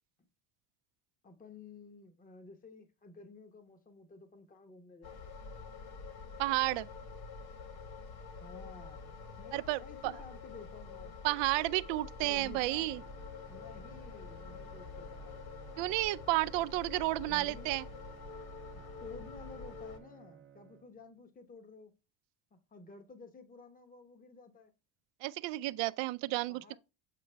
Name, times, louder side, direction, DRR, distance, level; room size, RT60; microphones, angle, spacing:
voice 1, 1.2-5.3 8.4-11.1 12.2-12.9 13.5-15.4 17.3-17.7 18.7-21.9 22.5-24.7 26.5-26.8, left 4 dB, 20° left, 0.9 m, -53 dB
sound 1, 5.0-20.0, left 4 dB, 55° left, 1.7 m, -47 dB
voice 2, 6.4-6.9 9.5-10.1 11.2-13.0 15.8-17.8 25.2-26.8, right 19 dB, 70° right, 0.5 m, -32 dB
Bowed string instrument, 12.9-21.3, right 9 dB, 30° right, 0.7 m, -57 dB
7.6 x 5.2 x 3.3 m
cardioid pair, 110°, 46 cm